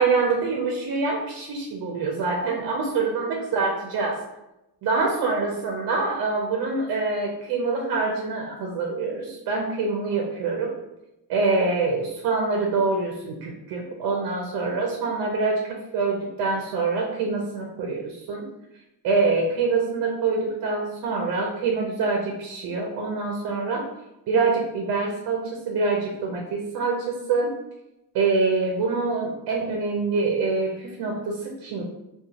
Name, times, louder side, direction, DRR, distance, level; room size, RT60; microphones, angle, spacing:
voice 1, 0.0-4.2 4.8-10.7 11.3-18.5 19.0-23.8 24.3-27.5 28.1-31.8, right 4 dB, 60° right, 0 dB, 0.5 m, -25 dB
2.4 x 2.2 x 2.7 m, 0.92 s
cardioid pair, 170°, 42 cm